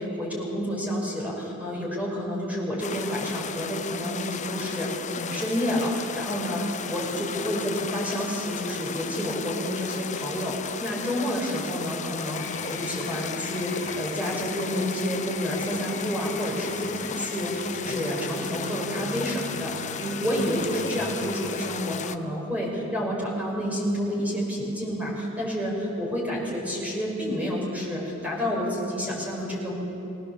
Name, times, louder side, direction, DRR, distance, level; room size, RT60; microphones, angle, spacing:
voice 1, 0.0-4.9 5.1-19.7 20.0-29.8, equal, 5° right, -4 dB, 5.5 m, -29 dB
sound 1, 2.8-22.2, left 6 dB, 35° left, 0.6 m, -35 dB
sound 2, 12.3-21.7, left 3 dB, 60° left, 1.6 m, -42 dB
21.0 x 19.0 x 7.3 m, 2.9 s
head